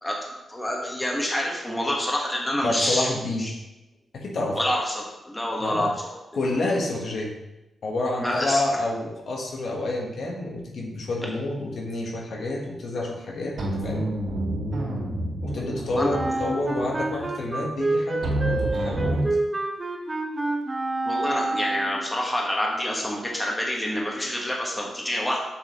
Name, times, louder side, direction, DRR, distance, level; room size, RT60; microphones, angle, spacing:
voice 1, 0.0-3.1 3.4-3.5 4.5-6.1 8.2-8.6 15.9-16.1 21.0-25.4, left 1 dB, 10° left, -2 dB, 1.3 m, -27 dB
voice 2, 2.6-3.5 4.1-4.6 5.6-5.9 6.3-7.3 7.8-14.1 15.4-19.4, left 2 dB, 60° left, 0 dB, 1.1 m, -29 dB
sound 1, 13.6-19.3, right 1 dB, 80° right, 2.7 m, -29 dB
Wind instrument woodwind instrument, 16.1-22.1, right 2 dB, 20° right, 0.8 m, -28 dB
7.3 x 6.9 x 2.9 m, 0.96 s
wide cardioid pair, 145°, 0 cm